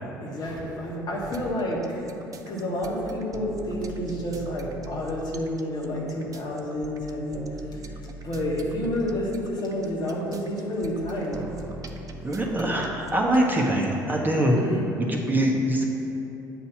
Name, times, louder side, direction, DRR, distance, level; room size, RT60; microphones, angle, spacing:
voice 1, 0.2-2.1 2.5-7.4 8.2-11.4 14.6-14.9, equal, 45° left, -3 dB, 1.4 m, -29 dB
sound 1, 1.2-14.0, right 2 dB, 35° right, 0.5 m, -41 dB
voice 2, 12.2-14.6 15.0-15.8, right 1 dB, 20° right, -1 dB, 0.9 m, -23 dB
8.1 x 2.8 x 5.9 m, 2.9 s
hypercardioid pair, 60°, 10 cm